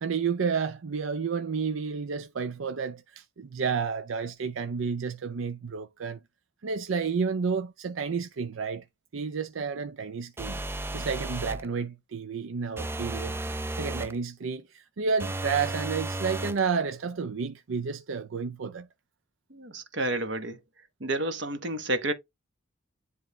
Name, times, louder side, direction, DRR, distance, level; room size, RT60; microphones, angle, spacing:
voice 1, 0.0-6.2 6.6-8.9 9.1-10.6 10.9-13.4 13.8-18.9, right 5 dB, 85° right, 0.5 m, -31 dB
sound 1, 10.4-11.7 12.8-14.2 15.2-16.6, right 2 dB, 10° right, 0.3 m, -33 dB
voice 2, 19.5-20.6 21.0-22.1, right 1 dB, 65° right, 1.3 m, -30 dB
10.0 x 3.5 x 3.2 m
head